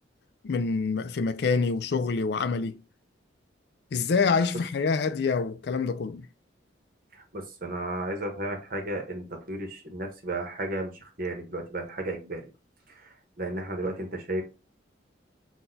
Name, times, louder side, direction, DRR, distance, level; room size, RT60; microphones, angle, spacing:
voice 1, 0.4-2.8 3.9-6.3, left 4 dB, 55° left, 0.4 m, -26 dB
voice 2, 7.1-12.4 12.9-14.4, right 1 dB, 45° right, 0.9 m, -34 dB
5.8 x 2.3 x 2.6 m
head